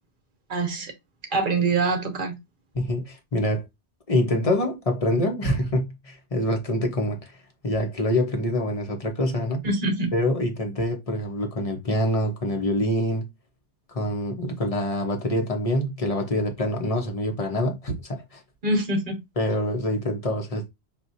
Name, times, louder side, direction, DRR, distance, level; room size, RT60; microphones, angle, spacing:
voice 1, 0.5-0.9 1.3-2.4 9.6-10.1 18.6-19.2, right 3 dB, 50° right, 1.1 m, -24 dB
voice 2, 2.7-3.6 4.1-7.2 7.6-9.6 10.1-13.3 13.9-18.4 19.4-20.6, left 1 dB, 35° left, 1.1 m, -25 dB
6.1 x 2.6 x 2.7 m
omnidirectional pair, 1.1 m